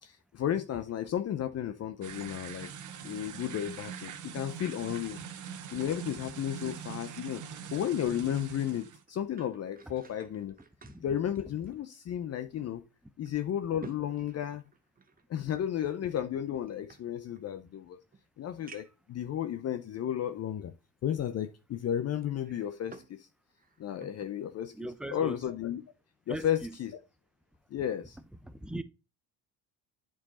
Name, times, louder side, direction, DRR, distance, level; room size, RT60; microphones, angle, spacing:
voice 1, 0.0-2.7 3.0-5.2 5.7-7.4 7.7-10.6 11.0-12.8 13.2-14.6 15.3-18.0 18.4-20.7 21.0-23.3 23.8-24.8 25.1-25.8 26.3-27.0 27.7-28.2, left 10 dB, 40° left, 0.6 m, -33 dB
sound 1, 2.0-9.0, right 8 dB, 50° right, 1.0 m, -43 dB
sound 2, 8.5-12.2 12.6-12.7 13.3-15.2 16.1-17.6 18.1-18.2 18.7-19.1 19.8-19.9 22.2-23.2 23.5-24.4 24.8-25.0, right 5 dB, 25° right, 0.9 m, -53 dB
voice 2, 10.8-11.2 24.7-25.4 26.3-26.7 28.4-28.8, right 1 dB, ahead, 0.6 m, -39 dB
8.5 x 4.7 x 4.2 m
supercardioid pair, 90°, 38 cm